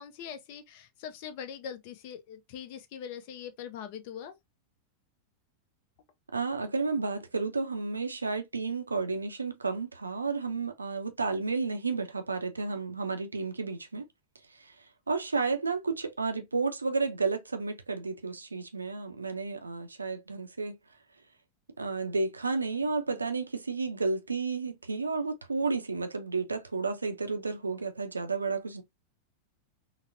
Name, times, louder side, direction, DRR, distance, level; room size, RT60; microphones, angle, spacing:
voice 1, 0.0-4.3, left 8 dB, 45° left, 0.6 m, -42 dB
voice 2, 6.3-14.0 14.6-14.7 15.1-20.8 21.8-28.8, right 4 dB, 80° right, 0.4 m, -32 dB
3.8 x 2.1 x 2.5 m
figure-of-eight pair, 90°, 0 cm